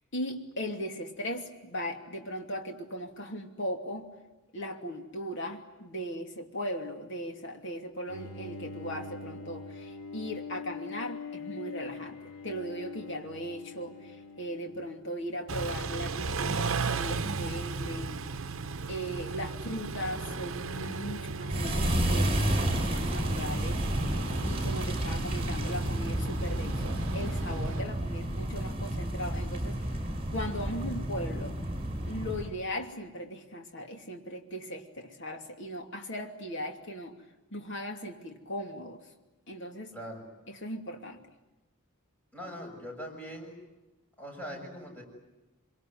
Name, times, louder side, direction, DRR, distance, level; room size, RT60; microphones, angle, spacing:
voice 1, 0.1-4.1 4.5-12.2 12.4-18.3 18.9-29.8 30.3-31.6 32.0-37.1 37.5-39.0 39.5-40.0 40.5-41.2, equal, 60° left, 4 dB, 2.8 m, -38 dB
Bowed string instrument, 8.1-15.3, left 4 dB, 85° left, 2.9 m, -43 dB
Car / Idling / Accelerating revving vroom, 15.5-27.8, right 4 dB, 65° right, 0.9 m, -36 dB
sound 1, 21.5-32.5, right 1 dB, 25° right, 5.8 m, -31 dB
voice 2, 39.9-40.2 42.3-43.6 44.2-45.0, equal, 5° left, 0 dB, 7.1 m, -41 dB
25.5 x 24.0 x 9.6 m, 1.0 s
head